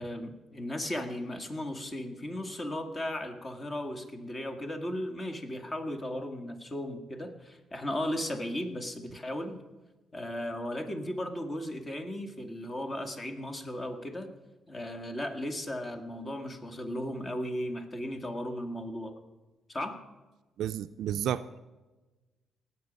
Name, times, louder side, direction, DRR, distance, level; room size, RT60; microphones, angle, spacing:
voice 1, 0.0-9.6 10.1-14.3 14.7-19.2 19.7-20.0, left 1 dB, 30° left, 6 dB, 1.9 m, -36 dB
voice 2, 20.6-21.6, right 10 dB, 75° right, 10 dB, 0.4 m, -32 dB
19.0 x 7.5 x 5.3 m, 1.2 s
cardioid pair, 90°, 0 cm